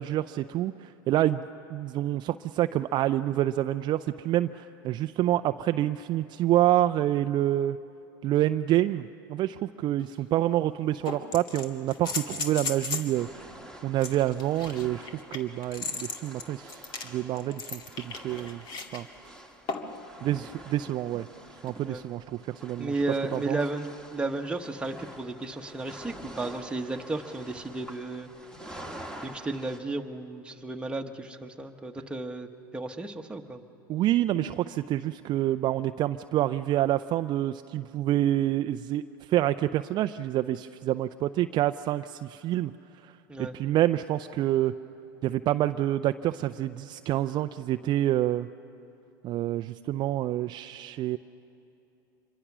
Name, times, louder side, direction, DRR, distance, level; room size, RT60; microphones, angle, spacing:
voice 1, 0.0-7.8 8.2-13.3 13.8-18.6 18.9-19.1 20.2-21.3 21.6-22.9 23.3-23.6 33.9-42.7 43.0-44.7 45.2-48.5 49.2-51.2, right 13 dB, 40° right, 10 dB, 0.5 m, -27 dB
sound 1, 10.0-10.1 11.0-13.1 14.0-19.0 19.7-20.0 21.7-21.8, left 4 dB, 45° left, 2.1 m, -36 dB
sound 2, 13.1-29.8, right 1 dB, 5° left, 1.8 m, -47 dB
voice 2, 22.8-28.3 29.2-33.6 43.3-43.6, right 2 dB, 10° right, 3 dB, 1.3 m, -33 dB
26.5 x 22.5 x 6.2 m, 2.9 s
hypercardioid pair, 100°, 11 cm